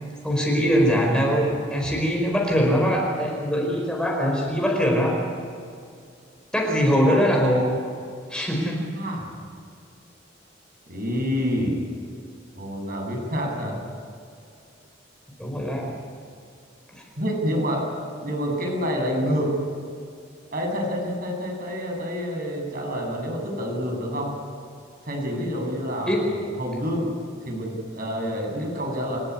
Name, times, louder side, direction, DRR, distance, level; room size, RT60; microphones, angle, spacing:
voice 1, 0.2-5.1 6.5-7.7 8.3-8.8 15.4-15.9 26.1-26.2, equal, 5° left, -1 dB, 4.9 m, -22 dB
voice 2, 8.9-9.3 10.9-11.8 12.6-13.8 17.2-19.6 20.5-24.3 25.0-27.1 27.4-29.2, equal, 50° right, 0 dB, 7.9 m, -28 dB
28.0 x 14.5 x 9.8 m, 2.3 s
head